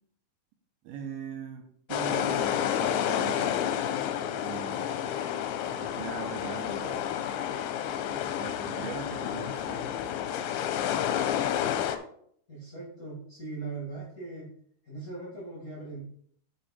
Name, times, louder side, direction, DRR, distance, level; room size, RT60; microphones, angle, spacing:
voice 1, 0.8-3.7 4.4-5.1 5.8-7.6 8.1-10.3, right 7 dB, 75° right, 3 dB, 2.5 m, -41 dB
sound 1, 1.9-12.0, left 10 dB, 85° left, 2.6 m, -30 dB
voice 2, 12.5-14.5 14.9-16.0, right 3 dB, 30° left, -6 dB, 1.9 m, -39 dB
8.4 x 5.7 x 4.3 m, 0.64 s
omnidirectional pair, 4.8 m